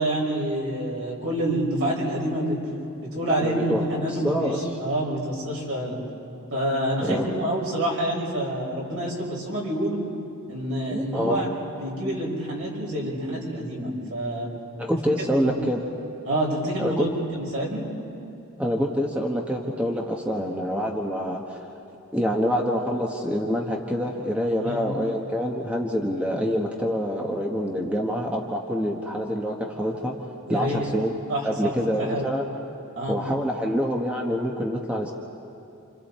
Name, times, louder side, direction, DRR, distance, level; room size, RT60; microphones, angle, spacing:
voice 1, 0.0-2.6 3.0-4.5 4.8-6.0 6.5-10.0 10.5-11.5 11.8-14.5 15.4-15.5 16.3-17.1 17.4-17.8 24.6-24.8 30.5-30.9 31.3-32.3 33.0-33.2, right 1 dB, 65° right, -4 dB, 6.5 m, -27 dB
voice 2, 3.4-4.6 7.0-7.4 10.9-11.5 14.8-15.8 16.8-17.1 18.6-21.7 22.1-30.1 30.5-31.1 31.4-32.5 33.1-35.1, equal, 5° right, 0 dB, 1.4 m, -26 dB
29.5 x 28.0 x 4.4 m, 2.7 s
head